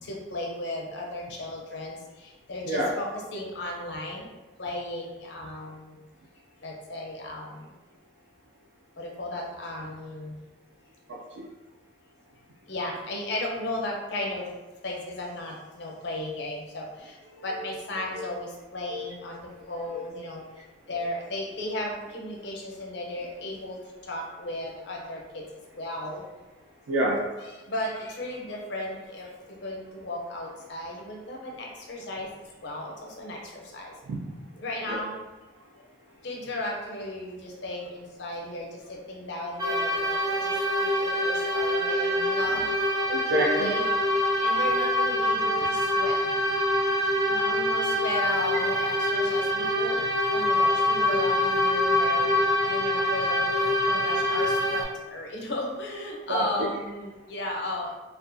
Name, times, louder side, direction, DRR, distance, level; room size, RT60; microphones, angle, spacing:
voice 1, 0.0-4.3 4.6-6.0 6.6-7.7 9.0-10.4 12.7-14.5 14.8-20.4 20.9-25.4 25.8-26.2 27.4-32.3 32.6-33.9 34.6-35.2 36.2-42.7 43.6-43.9 44.4-46.2 47.3-50.0 50.3-58.0, left 1 dB, 60° left, -1 dB, 0.5 m, -35 dB
voice 2, 11.1-11.4 17.4-17.5 18.2-18.3 18.9-19.1 19.9-20.0 26.9-27.2 34.1-34.2 34.9-35.0 43.1-43.7 56.3-56.4, right 1 dB, 85° right, -4 dB, 0.4 m, -27 dB
sound 1, 39.6-54.8, left 1 dB, 20° right, 0.4 m, -25 dB
2.4 x 2.2 x 2.5 m, 1.1 s
head